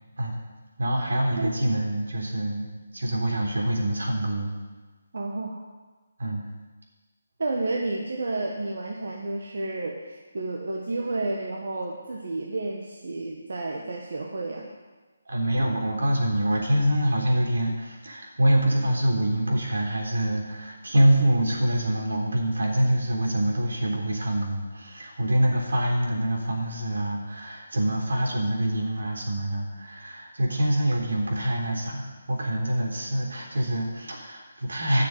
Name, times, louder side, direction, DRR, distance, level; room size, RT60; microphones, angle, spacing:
voice 1, 0.8-2.7 2.9-4.5 6.2-6.4 15.3-35.0, right 1 dB, 85° right, 0 dB, 3.6 m, -25 dB
voice 2, 1.3-1.7 5.1-5.6 7.4-14.7, right 2 dB, 60° right, -1 dB, 1.5 m, -31 dB
11.5 x 6.9 x 8.1 m, 1.3 s
hypercardioid pair, 170°, 0 cm